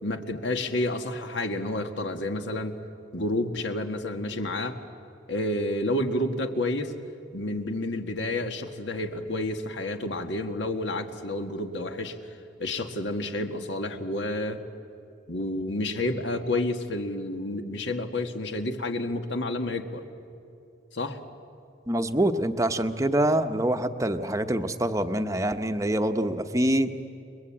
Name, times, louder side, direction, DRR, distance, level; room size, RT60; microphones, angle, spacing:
voice 1, 0.0-2.8 3.1-4.8 5.3-6.9 7.3-12.2 12.6-14.6 15.3-20.0 20.9-21.2, left 1 dB, 65° left, 6 dB, 1.8 m, -30 dB
voice 2, 21.9-26.9, right 1 dB, 15° right, 8 dB, 0.9 m, -25 dB
30.0 x 21.5 x 8.7 m, 2.6 s
head